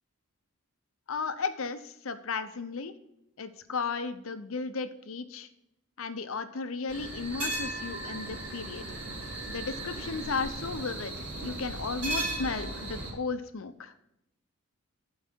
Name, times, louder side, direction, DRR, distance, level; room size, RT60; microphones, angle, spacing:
voice 1, 1.1-3.0 3.4-5.5 6.0-8.8 9.5-13.9, left 4 dB, 70° left, 10 dB, 0.7 m, -35 dB
sound 1, 6.9-13.1, right 1 dB, 55° right, 3.7 m, -36 dB
12.0 x 4.7 x 4.4 m, 0.82 s
head